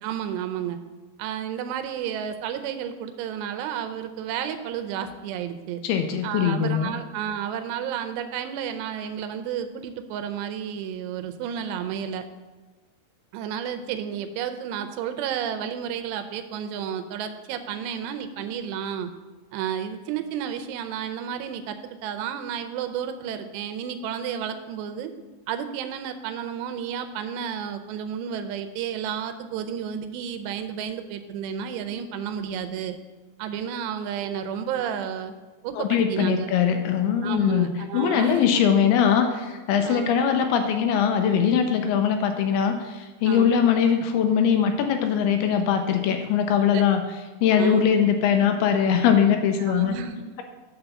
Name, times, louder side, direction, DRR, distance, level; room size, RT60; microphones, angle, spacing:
voice 1, 0.0-0.8 1.2-5.8 6.2-12.2 13.3-19.1 19.5-25.1 25.5-33.0 33.4-35.3 35.6-36.5 37.2-38.4 39.8-40.2 43.3-43.6 46.7-46.8 47.6-47.9 49.6-50.4, right 8 dB, 90° right, 8 dB, 2.9 m, -31 dB
voice 2, 5.8-6.9 35.7-37.7 37.9-47.0 47.4-50.0, left 8 dB, 80° left, 6 dB, 2.4 m, -21 dB
9.1 x 4.0 x 6.9 m, 1.2 s
omnidirectional pair, 4.8 m